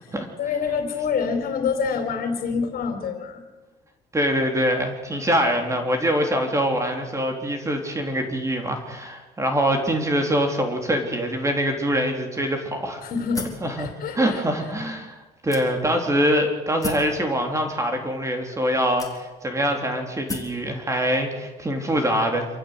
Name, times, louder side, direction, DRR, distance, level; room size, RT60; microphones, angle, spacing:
voice 1, 0.0-3.4 13.0-13.5 13.8-14.4, left 5 dB, 55° left, 4 dB, 4.1 m, -26 dB
voice 2, 4.1-13.0 13.6-13.9 14.2-15.1 15.4-22.5, equal, 15° right, 4 dB, 3.5 m, -24 dB
sound 1, 13.3-13.7 14.5-14.6 15.5-16.0 16.8-17.1 18.1-18.2 19.0-19.5 20.3-20.6, left 3 dB, 20° left, 3.9 m, -33 dB
27.0 x 15.0 x 8.1 m, 1.2 s
cardioid pair, 110°, 17 cm